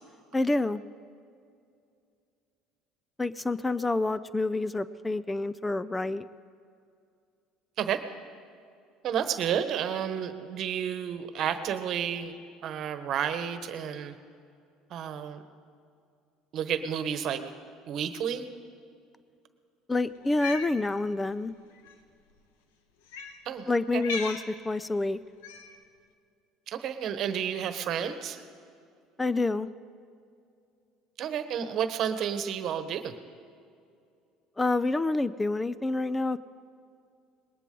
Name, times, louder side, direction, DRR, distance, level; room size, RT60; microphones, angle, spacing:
voice 1, 0.3-0.8 3.2-6.2 19.9-21.5 23.7-25.2 29.2-29.7 34.6-36.4, left 2 dB, 15° left, 16 dB, 0.4 m, -28 dB
voice 2, 9.0-12.4 12.6-14.2 14.9-15.4 16.5-17.4 17.9-18.5 23.4-24.0 26.7-28.4 31.2-33.1, right 8 dB, 55° right, 10 dB, 1.2 m, -31 dB
Cat, 20.2-20.7 21.8-21.9 23.1-23.4 24.0-24.5 25.4-25.8, left 5 dB, 90° left, 1.1 m, -37 dB
20.5 x 18.5 x 3.9 m, 2.4 s
supercardioid pair, 85°, 0 cm